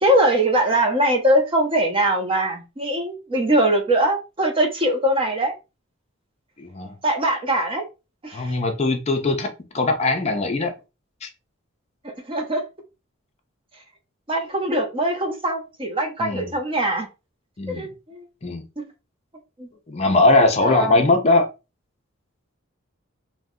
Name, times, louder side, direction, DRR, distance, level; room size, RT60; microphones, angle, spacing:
voice 1, 0.0-5.5 7.0-7.8 8.2-8.6 12.0-12.6 14.3-17.1 17.7-18.3 18.8-18.9 19.6-19.7 20.6-21.0, right 1 dB, 25° right, 0.5 m, -22 dB
voice 2, 6.6-7.0 8.3-9.5 9.7-10.7 11.2-11.3 16.2-16.5 17.6-17.9 18.4-18.6 19.9-21.5, left 2 dB, 30° left, 0.4 m, -20 dB
2.6 x 2.1 x 3.6 m
head